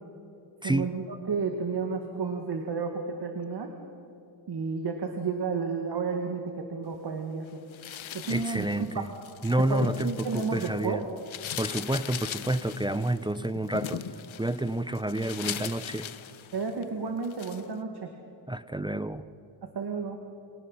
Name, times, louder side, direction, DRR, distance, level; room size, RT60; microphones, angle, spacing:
voice 1, 0.6-3.7 4.5-7.6 8.1-9.0 9.7-11.0 16.5-18.1 19.6-20.2, right 5 dB, 55° right, 4 dB, 2.2 m, -32 dB
sound 1, 7.7-10.9 11.2-16.8 17.2-17.6, left 10 dB, 85° left, 1.1 m, -39 dB
voice 2, 8.3-9.1 9.4-11.1 11.6-14.0 14.4-16.1 18.5-19.2, right 1 dB, 10° right, 13 dB, 0.6 m, -29 dB
29.0 x 26.5 x 5.7 m, 2.7 s
wide cardioid pair, 120°, 46 cm